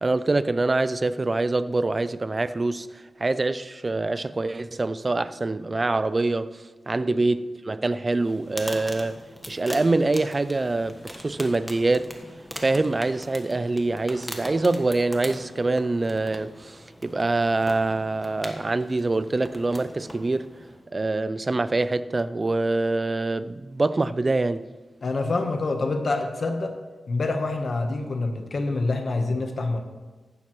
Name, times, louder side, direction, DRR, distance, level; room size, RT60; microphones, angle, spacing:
voice 1, 0.0-9.2 9.5-12.1 12.6-20.5 20.9-24.7, right 2 dB, 30° right, 0.4 m, -25 dB
sound 1, 8.2-20.9, equal, 5° left, 1.3 m, -41 dB
voice 2, 25.0-26.7 27.1-29.8, left 3 dB, 50° left, 1.1 m, -26 dB
15.5 x 12.0 x 3.1 m
wide cardioid pair, 135°, 0 cm